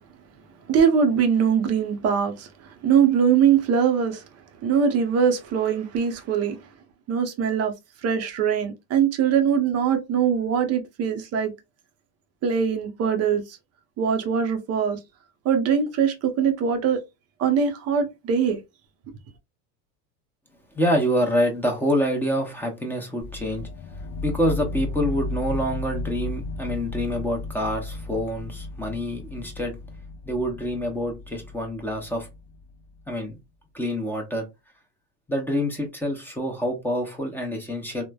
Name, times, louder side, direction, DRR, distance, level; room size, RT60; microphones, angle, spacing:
voice 1, 0.7-2.5 2.8-4.2 4.6-6.6 7.1-7.7 8.0-11.5 12.4-13.6 14.0-15.0 15.4-17.0 17.4-18.6, right 7 dB, 30° right, 0.6 m, -22 dB
voice 2, 20.7-23.7 24.2-29.8 30.2-32.3 33.1-33.4 33.7-34.5 35.3-38.0, equal, 5° left, 0.7 m, -26 dB
sound 1, 23.2-33.0, left 3 dB, 35° left, 0.4 m, -34 dB
3.1 x 2.1 x 2.2 m
supercardioid pair, 120°, 49 cm